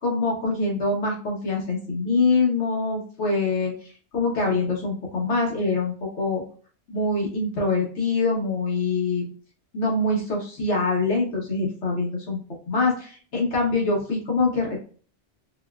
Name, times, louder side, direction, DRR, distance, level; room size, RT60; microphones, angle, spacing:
voice 1, 0.0-6.4 6.9-9.3 9.7-12.4 12.7-14.8, left 3 dB, 75° left, -2 dB, 1.3 m, -24 dB
4.2 x 2.3 x 2.3 m, 0.41 s
omnidirectional pair, 1.2 m